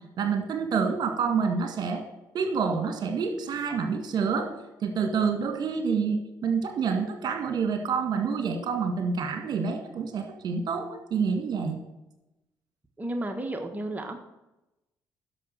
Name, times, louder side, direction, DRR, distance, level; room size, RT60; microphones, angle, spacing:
voice 1, 0.2-2.0 2.3-4.5 4.8-11.8, right 5 dB, 60° right, 5 dB, 2.0 m, -28 dB
voice 2, 13.0-14.2, right 1 dB, 20° right, 4 dB, 1.5 m, -32 dB
10.5 x 6.8 x 7.7 m, 0.98 s
supercardioid pair, 60°, 8 cm